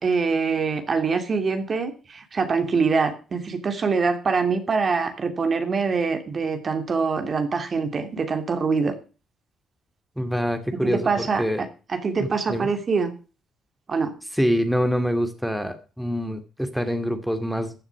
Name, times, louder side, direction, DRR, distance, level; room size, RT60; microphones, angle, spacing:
voice 1, 0.0-9.0 10.8-13.1 13.9-14.1, right 4 dB, 45° right, 6 dB, 2.8 m, -24 dB
voice 2, 10.2-11.1 11.4-11.6 12.2-12.7 14.3-17.7, equal, ahead, 8 dB, 2.2 m, -25 dB
15.0 x 7.2 x 6.1 m, 0.35 s
supercardioid pair, 55°, 0 cm